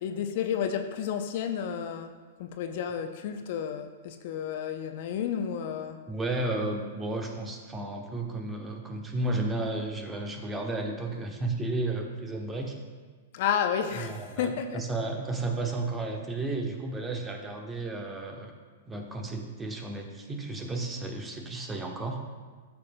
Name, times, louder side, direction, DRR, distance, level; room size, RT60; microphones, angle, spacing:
voice 1, 0.0-2.1 2.4-6.0 13.3-14.8, left 8 dB, 55° left, 7 dB, 0.6 m, -31 dB
voice 2, 6.1-12.8 14.0-18.5 18.9-22.2, right 2 dB, 15° right, 2 dB, 1.1 m, -33 dB
13.0 x 6.9 x 2.2 m, 1.4 s
hypercardioid pair, 110°, 0 cm